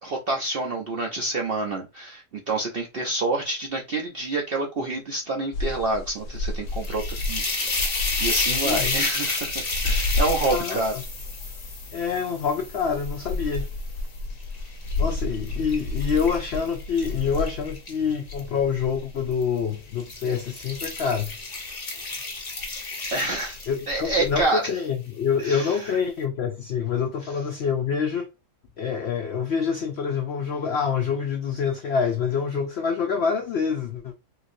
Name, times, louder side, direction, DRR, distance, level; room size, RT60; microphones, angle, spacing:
voice 1, 0.0-7.0 7.3-10.9 23.1-23.6 23.9-24.6 25.4-25.9, right 2 dB, 65° right, 0.5 m, -28 dB
sound 1, 5.5-24.4, left 2 dB, 60° left, 1.0 m, -33 dB
sound 2, 6.7-13.9 14.4-18.4 19.3-19.6 20.0-24.1, left 3 dB, 35° left, 0.8 m, -31 dB
voice 2, 8.5-9.0 10.4-10.8 11.9-13.7 15.0-21.3 23.7-28.3 28.8-34.1, left 6 dB, 80° left, 0.5 m, -26 dB
3.8 x 2.6 x 2.5 m
omnidirectional pair, 1.7 m